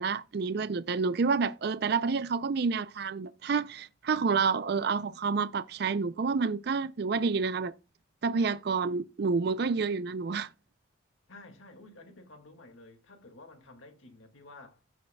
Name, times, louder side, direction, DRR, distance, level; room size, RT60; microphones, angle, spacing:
voice 1, 0.0-7.7 8.2-10.5, right 5 dB, 50° right, 0.4 m, -29 dB
voice 2, 11.3-14.8, left 2 dB, 80° left, 2.0 m, -52 dB
16.0 x 6.5 x 2.2 m
head